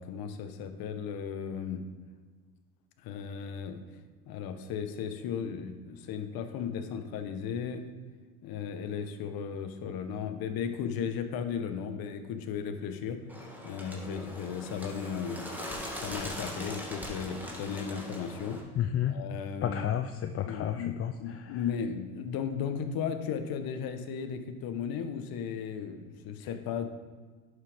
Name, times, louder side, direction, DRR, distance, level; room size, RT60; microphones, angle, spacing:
voice 1, 0.0-1.8 3.0-3.8 4.3-7.8 8.4-13.2 13.6-15.4 15.9-18.6 19.1-19.8 20.4-26.9, left 7 dB, 55° left, 8 dB, 1.2 m, -35 dB
Bird, 13.3-18.6, left 1 dB, 5° right, 2.5 m, -41 dB
voice 2, 18.8-19.1 19.6-21.5 26.4-26.5, left 10 dB, 35° left, 7 dB, 0.5 m, -31 dB
11.0 x 6.5 x 3.6 m, 1.5 s
hypercardioid pair, 80°, 43 cm